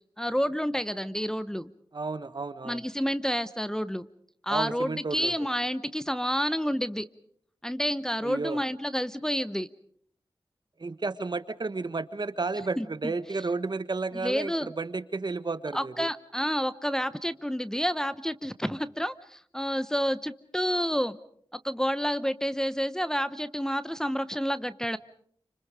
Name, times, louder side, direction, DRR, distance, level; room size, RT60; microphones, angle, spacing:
voice 1, 0.2-1.7 2.6-4.1 4.4-7.1 7.6-9.7 12.8-13.1 14.1-14.7 15.7-21.2 21.5-25.0, equal, 5° left, 13 dB, 0.9 m, -29 dB
voice 2, 1.9-2.8 4.5-5.3 8.2-8.6 10.8-16.1, right 3 dB, 55° right, 12 dB, 1.4 m, -32 dB
29.5 x 26.5 x 5.0 m, 0.64 s
wide cardioid pair, 70°, 9 cm